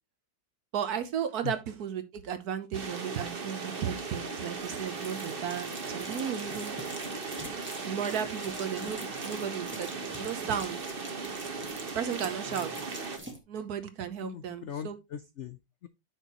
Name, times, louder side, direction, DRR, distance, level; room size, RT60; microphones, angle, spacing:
voice 1, 0.7-6.7 7.8-10.8 11.9-12.7 13.5-15.0, right 8 dB, 60° right, 1.3 m, -34 dB
sound 1, 2.7-13.2, right 4 dB, 35° right, 1.2 m, -37 dB
sound 2, 4.6-13.4, right 1 dB, 5° right, 1.4 m, -46 dB
voice 2, 14.2-15.9, left 9 dB, 80° left, 0.6 m, -40 dB
9.1 x 6.4 x 3.0 m
omnidirectional pair, 2.0 m